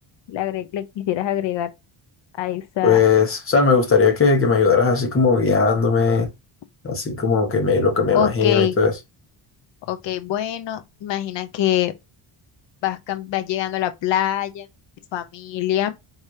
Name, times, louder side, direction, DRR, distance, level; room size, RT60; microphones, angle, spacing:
voice 1, 0.3-1.7 2.4-3.0 8.1-8.8 9.9-11.9 12.8-14.7 15.1-16.0, left 12 dB, 65° left, 0.9 m, -24 dB
voice 2, 2.8-6.3 6.8-8.9, left 5 dB, 25° left, 1.5 m, -18 dB
4.8 x 3.2 x 2.8 m
cardioid pair, 130°, 48 cm